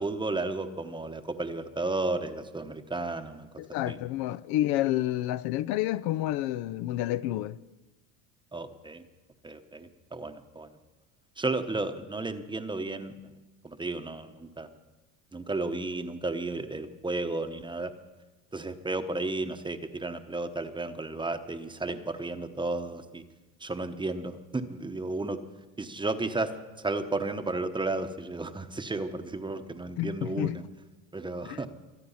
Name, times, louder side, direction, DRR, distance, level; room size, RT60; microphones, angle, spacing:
voice 1, 0.0-3.5 3.9-4.0 8.5-9.0 9.4-10.7 11.4-13.3 13.6-14.7 15.3-17.9 18.5-23.2 23.6-25.4 25.8-30.6 31.1-31.7, right 2 dB, 10° right, 0.9 m, -33 dB
voice 2, 3.6-7.6 30.0-30.6 31.5-31.6, left 14 dB, 65° left, 0.6 m, -29 dB
24.0 x 9.2 x 5.6 m
supercardioid pair, 120°, 41 cm